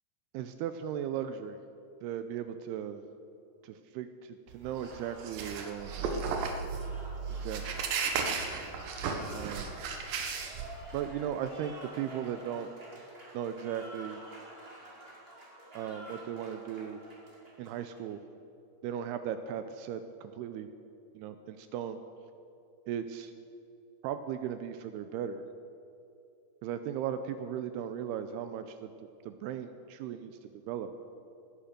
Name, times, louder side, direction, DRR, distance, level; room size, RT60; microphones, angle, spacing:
voice 1, 0.3-1.6 2.0-3.0 3.6-6.5 7.4-7.6 9.3-9.8 10.9-12.7 13.3-14.2 15.7-17.0 17.6-18.2 18.8-20.7 21.2-22.0 22.9-23.3 24.0-25.5 26.6-28.9 29.3-30.9, right 9 dB, 85° right, 10 dB, 2.4 m, -37 dB
Applause, 4.5-18.1, right 2 dB, 25° right, 1.2 m, -49 dB
sound 1, 4.5-11.0, right 5 dB, 65° right, 2.6 m, -35 dB
18.0 x 10.0 x 6.7 m, 2.6 s
omnidirectional pair, 5.0 m